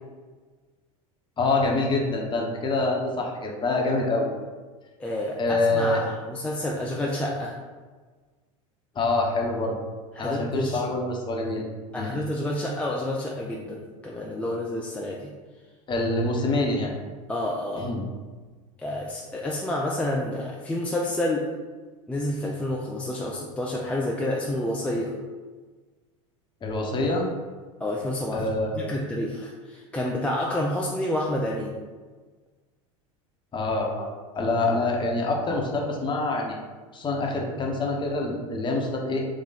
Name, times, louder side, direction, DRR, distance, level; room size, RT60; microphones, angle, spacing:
voice 1, 1.4-4.3 5.4-6.0 8.9-9.8 10.2-11.6 12.0-12.2 15.9-17.0 17.7-18.1 26.6-27.3 28.3-29.0 33.5-34.1 34.4-36.6 36.9-39.2, left 2 dB, 25° left, 0 dB, 1.0 m, -26 dB
voice 2, 5.0-7.6 10.2-10.8 11.9-15.3 17.3-17.9 18.8-21.5 22.1-25.1 27.8-31.8, left 1 dB, 5° left, -3 dB, 0.5 m, -29 dB
3.8 x 3.0 x 4.0 m, 1.4 s
hypercardioid pair, 95°, 17 cm